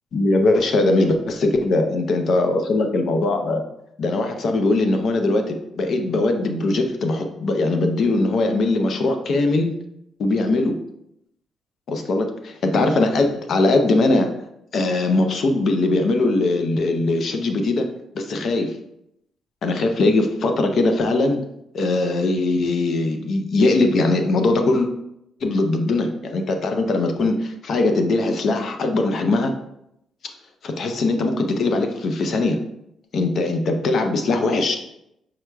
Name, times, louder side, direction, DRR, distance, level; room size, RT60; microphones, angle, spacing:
voice 1, 0.1-3.6 4.0-9.7 10.2-10.8 11.9-14.3 14.7-17.9 18.1-18.7 19.6-21.4 21.7-24.9 25.4-29.5 30.6-32.6 33.1-34.8, left 2 dB, 50° left, 5 dB, 0.5 m, -20 dB
4.8 x 4.6 x 2.2 m, 0.81 s
cardioid pair, 155°, 0 cm